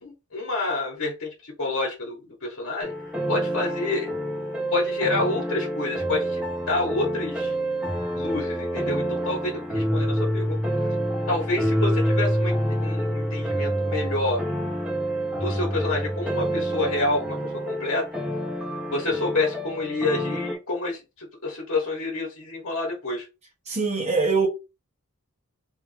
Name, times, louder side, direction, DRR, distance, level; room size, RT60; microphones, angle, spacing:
voice 1, 0.0-2.9 3.3-4.1 4.7-6.4 6.7-7.5 8.1-10.6 11.3-14.4 15.3-18.1 18.9-21.0 21.4-23.2, left 2 dB, 65° left, 1.4 m, -28 dB
sound 1, 2.8-20.5, equal, 5° right, 1.2 m, -27 dB
voice 2, 23.7-24.5, right 4 dB, 30° right, 1.5 m, -23 dB
3.3 x 3.3 x 3.2 m
head